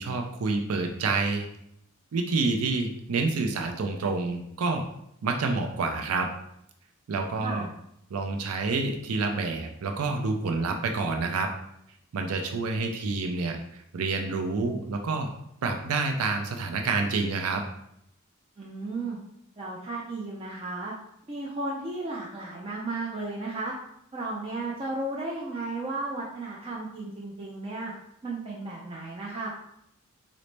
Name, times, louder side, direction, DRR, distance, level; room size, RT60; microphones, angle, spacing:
voice 1, 0.0-1.5 2.1-4.8 5.2-6.3 7.1-7.7 8.1-11.5 12.1-15.3 15.6-17.6, right 3 dB, 85° right, 4 dB, 0.4 m, -28 dB
voice 2, 18.6-19.2 19.6-20.9 21.3-23.7 24.1-27.9 28.2-29.5, right 2 dB, 25° right, -4 dB, 0.4 m, -34 dB
3.9 x 2.0 x 3.2 m, 0.75 s
head